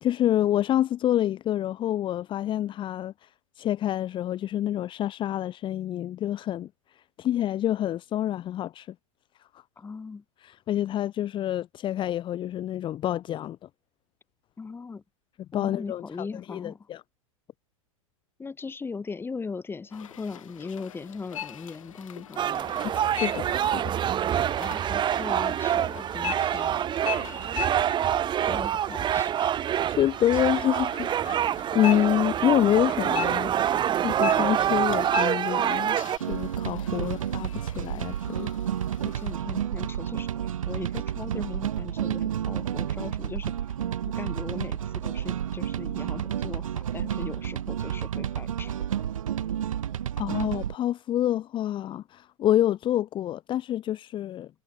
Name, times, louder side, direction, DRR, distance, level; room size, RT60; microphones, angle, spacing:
voice 1, 0.0-3.3 3.6-6.7 7.2-8.9 9.5-9.6 10.4-13.6 15.5-17.0 23.1-23.9 29.9-33.5 34.0-36.0 36.3-38.5 50.2-54.5, left 12 dB, 30° left, 1.2 m, -27 dB
voice 2, 9.8-10.2 14.6-15.0 15.5-16.8 18.4-22.9 24.6-26.9 28.4-29.6 36.9-37.1 39.0-43.5 44.1-48.8, left 4 dB, 15° left, 1.9 m, -39 dB
sound 1, 19.9-39.3, left 10 dB, 70° left, 5.5 m, -40 dB
sound 2, 22.4-36.2, right 10 dB, 25° right, 1.5 m, -26 dB
sound 3, 36.2-50.7, right 10 dB, 70° right, 1.2 m, -31 dB
figure-of-eight pair, 100°, 18 cm